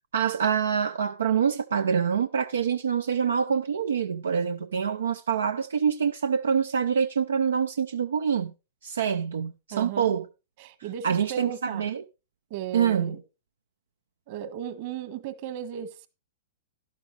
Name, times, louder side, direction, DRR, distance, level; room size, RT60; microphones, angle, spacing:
voice 1, 0.1-8.5 8.8-10.2 11.0-12.0 12.7-13.2, right 7 dB, 80° right, 0.5 m, -26 dB
voice 2, 9.7-10.2 10.6-11.9 12.5-13.2 14.3-16.1, right 10 dB, 50° right, 1.5 m, -36 dB
12.0 x 11.5 x 3.2 m
hypercardioid pair, 120°, 0 cm